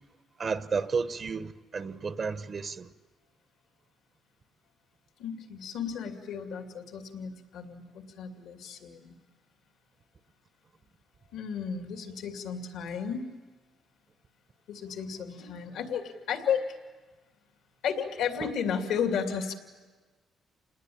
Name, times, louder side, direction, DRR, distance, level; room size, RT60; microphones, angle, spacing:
voice 1, 0.4-2.9, right 5 dB, 45° right, 1.0 m, -32 dB
voice 2, 5.2-9.1 11.3-13.3 14.7-16.8 17.8-19.5, left 7 dB, 85° left, 2.6 m, -33 dB
28.0 x 20.0 x 8.6 m
cardioid pair, 90°, 0 cm